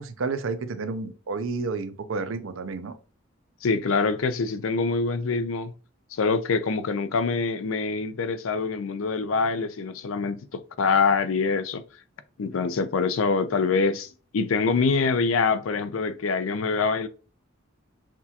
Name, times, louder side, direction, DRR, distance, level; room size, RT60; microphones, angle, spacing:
voice 1, 0.0-3.0, right 4 dB, 80° right, 0.5 m, -31 dB
voice 2, 3.6-5.7 6.1-11.8 12.4-14.1 14.3-17.1, left 4 dB, 90° left, 0.5 m, -25 dB
5.9 x 2.3 x 2.8 m
head